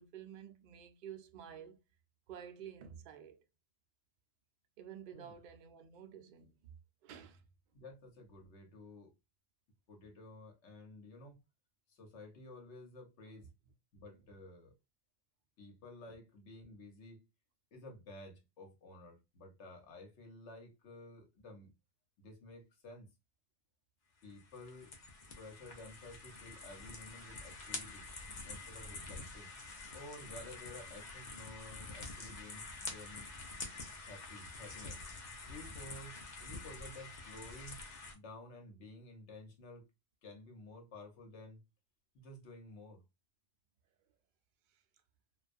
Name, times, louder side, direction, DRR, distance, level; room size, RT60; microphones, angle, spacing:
voice 1, 0.0-1.8 2.3-3.4 4.8-6.5 7.0-7.4 16.1-16.2 44.7-44.8, right 8 dB, 60° right, 0.5 m, -51 dB
voice 2, 7.7-9.1 9.9-11.4 11.9-13.5 13.9-14.7 15.6-17.2 17.7-21.7 22.2-23.1 24.2-24.9 25.4-28.1 28.4-29.5 29.9-33.3 34.0-35.0 35.5-37.8 38.1-39.9 40.2-41.6 42.1-43.0, left 2 dB, 75° left, 1.1 m, -53 dB
sound 1, 24.2-38.1, left 3 dB, 45° left, 0.7 m, -47 dB
2.3 x 2.2 x 2.4 m
omnidirectional pair, 1.2 m